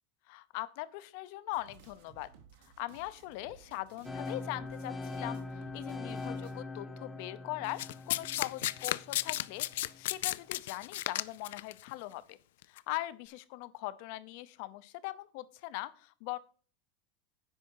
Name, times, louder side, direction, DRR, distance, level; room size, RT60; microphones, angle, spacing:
voice 1, 0.3-2.3 2.6-5.4 5.7-9.7 10.0-12.4 12.7-16.4, left 17 dB, 50° left, 15 dB, 0.7 m, -41 dB
sound 1, 1.5-6.6, right 7 dB, 70° right, 1.9 m, -58 dB
sound 2, 4.0-10.0, left 3 dB, 5° left, 0.9 m, -42 dB
Domestic sounds home sounds, 7.8-11.7 12.6-12.8, left 15 dB, 80° left, 0.4 m, -33 dB
10.0 x 6.2 x 4.7 m, 0.41 s
supercardioid pair, 175°, 0 cm